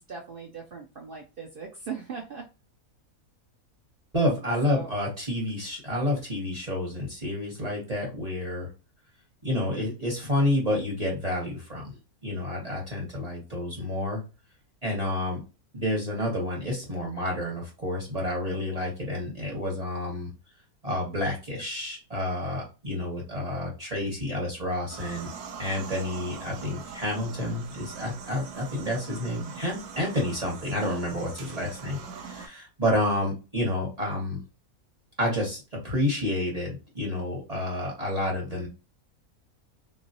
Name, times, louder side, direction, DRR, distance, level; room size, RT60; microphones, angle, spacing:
voice 1, 0.1-2.5 4.7-4.9, right 5 dB, 70° right, 1 dB, 0.5 m, -39 dB
voice 2, 4.1-8.7 9.4-12.0 12.2-14.2 14.8-15.4 15.7-20.3 20.8-25.3 25.6-34.4 35.2-38.7, left 1 dB, 30° right, -2 dB, 1.0 m, -29 dB
sound 1, 24.9-32.5, right 6 dB, 85° right, 1.2 m, -42 dB
3.0 x 2.6 x 2.7 m, 0.30 s
omnidirectional pair, 1.6 m